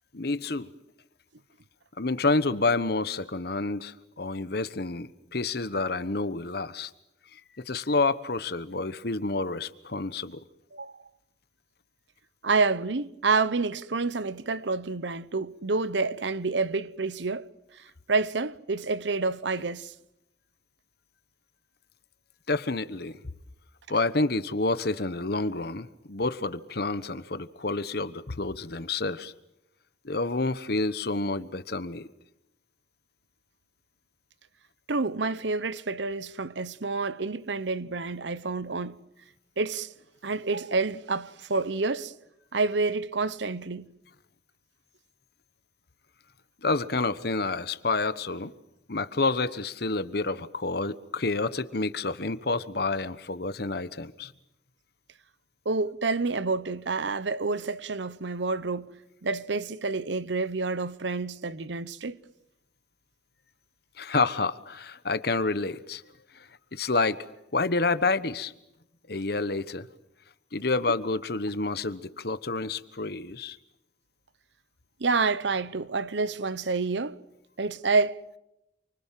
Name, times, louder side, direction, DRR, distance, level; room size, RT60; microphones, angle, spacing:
voice 1, 0.1-0.7 2.0-6.9 7.3-10.4 22.5-23.2 23.9-29.3 30.0-32.1 46.6-48.5 48.9-54.3 64.0-66.0 66.3-68.5 69.1-69.9 70.5-73.6, left 3 dB, 60° left, 1.1 m, -29 dB
voice 2, 12.4-19.9 34.9-39.0 39.6-39.9 40.2-42.1 42.5-43.9 55.6-58.9 59.2-62.2 75.0-77.2 77.6-78.2, right 3 dB, 75° right, 0.9 m, -28 dB
28.5 x 25.0 x 7.6 m
head